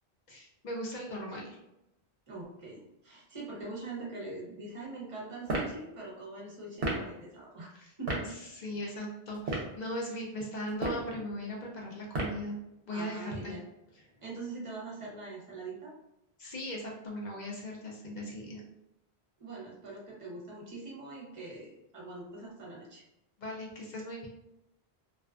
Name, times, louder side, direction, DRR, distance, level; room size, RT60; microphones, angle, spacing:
voice 1, 0.3-1.6 7.7-7.9 8.2-12.6 12.9-13.5 16.4-18.6 23.4-24.3, equal, 55° left, -2 dB, 0.5 m, -38 dB
voice 2, 2.3-7.7 8.0-8.3 8.8-9.0 12.9-13.6 14.2-15.9 19.4-23.0, right 3 dB, 35° right, -4 dB, 0.7 m, -43 dB
sound 1, 5.4-5.7 6.8-7.1 8.1-8.3 9.3-9.7 10.7-11.1 12.1-12.5, right 2 dB, 65° right, 0.8 m, -32 dB
2.4 x 2.3 x 2.3 m, 0.89 s
omnidirectional pair, 1.1 m